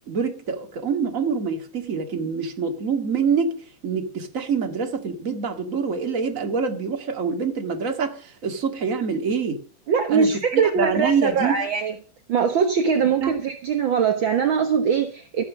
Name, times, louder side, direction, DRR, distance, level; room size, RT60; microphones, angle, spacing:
voice 1, 0.1-3.6 3.8-9.6 10.1-11.6 13.2-13.3, right 5 dB, 30° right, 1.7 m, -25 dB
voice 2, 9.9-11.9 12.3-15.4, right 6 dB, 60° right, 1.3 m, -22 dB
16.5 x 7.8 x 7.3 m
omnidirectional pair, 3.8 m